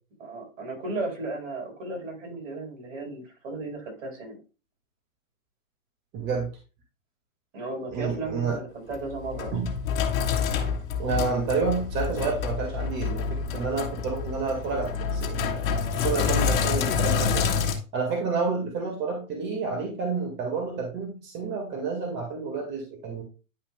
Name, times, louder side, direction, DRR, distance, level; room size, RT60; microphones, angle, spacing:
voice 1, 0.2-4.4 7.5-9.5, right 2 dB, 65° right, 1 dB, 4.5 m, -35 dB
voice 2, 6.1-6.5 7.9-8.6 9.5-9.7 11.0-15.6 15.9-17.5 17.9-23.2, right 4 dB, 25° right, 1 dB, 1.8 m, -29 dB
Sink (filling or washing), 8.9-17.7, left 6 dB, 40° left, 1.7 m, -27 dB
10.5 x 5.7 x 2.2 m, 0.33 s
hypercardioid pair, 135°, 41 cm